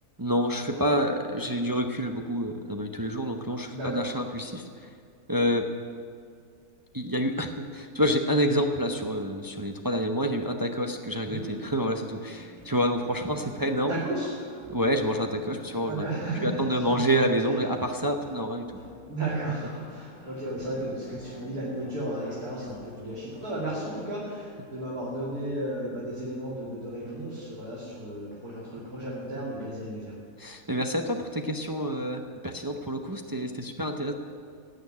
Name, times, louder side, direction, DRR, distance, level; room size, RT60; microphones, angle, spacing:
voice 1, 0.2-4.9 5.3-5.7 6.9-14.0 14.7-16.1 16.4-18.8 30.4-34.1, equal, 25° right, 4 dB, 0.4 m, -28 dB
voice 2, 3.7-4.0 11.3-11.4 13.8-14.3 15.8-16.6 16.9-17.2 19.1-30.1, right 1 dB, 70° right, -8 dB, 3.4 m, -34 dB
sound 1, 11.3-23.7, left 1 dB, 5° left, 2.2 m, -50 dB
17.5 x 6.8 x 9.7 m, 2.2 s
omnidirectional pair, 1.6 m